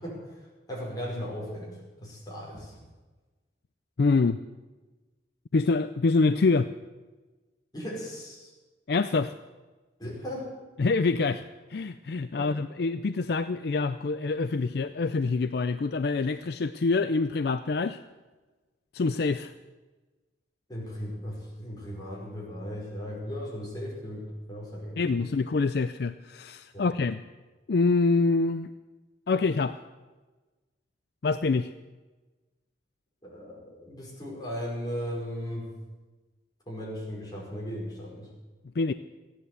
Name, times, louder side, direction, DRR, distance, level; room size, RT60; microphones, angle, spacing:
voice 1, 0.0-2.8 7.7-8.5 10.0-10.5 12.3-12.5 20.7-25.3 26.7-26.9 33.2-35.8 36.7-38.3, equal, 20° left, -4 dB, 5.3 m, -37 dB
voice 2, 4.0-4.4 5.5-6.7 8.9-9.3 10.8-18.0 18.9-19.5 25.0-27.2 27.7-28.7 29.3-29.8 31.2-31.7 38.8-38.9, left 3 dB, 60° left, 12 dB, 0.4 m, -26 dB
15.5 x 10.5 x 8.1 m, 1.2 s
head